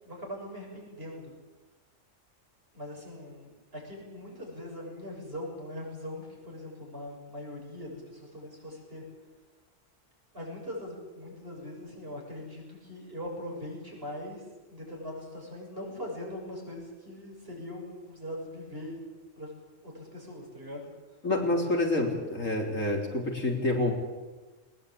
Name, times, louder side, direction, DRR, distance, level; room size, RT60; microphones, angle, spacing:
voice 1, 0.0-1.4 2.7-9.0 10.3-19.0 19.4-19.5 19.8-20.9, left 1 dB, 50° right, -1 dB, 7.4 m, -41 dB
voice 2, 21.2-23.9, left 2 dB, 80° left, 1 dB, 4.0 m, -27 dB
21.0 x 20.0 x 8.5 m, 1.3 s
omnidirectional pair, 1.3 m